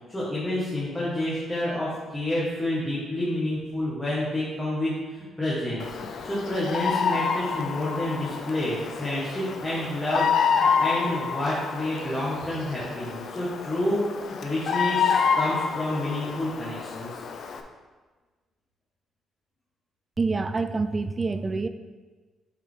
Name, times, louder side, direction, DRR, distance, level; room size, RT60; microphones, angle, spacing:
voice 1, 0.1-5.9 6.2-17.2, left 1 dB, 15° left, -8 dB, 1.8 m, -29 dB
Bird vocalization bird call bird song, 5.8-17.6, left 6 dB, 65° left, 0.6 m, -28 dB
voice 2, 20.2-21.7, right 3 dB, 30° right, 10 dB, 0.4 m, -26 dB
7.8 x 4.7 x 3.8 m, 1.3 s
cardioid pair, 90°, 0 cm